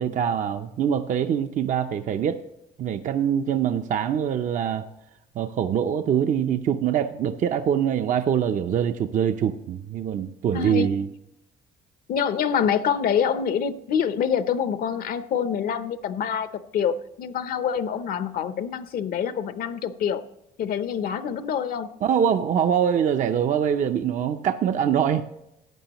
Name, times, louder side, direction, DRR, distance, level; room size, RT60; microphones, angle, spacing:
voice 1, 0.0-2.4 2.8-4.9 5.4-11.1 22.0-25.2, right 8 dB, 50° right, 8 dB, 0.6 m, -24 dB
voice 2, 10.5-10.9 12.1-16.5 16.7-20.2 20.6-21.9, left 8 dB, 60° left, 12 dB, 0.8 m, -26 dB
14.5 x 9.5 x 3.0 m, 0.87 s
cardioid pair, 110°, 17 cm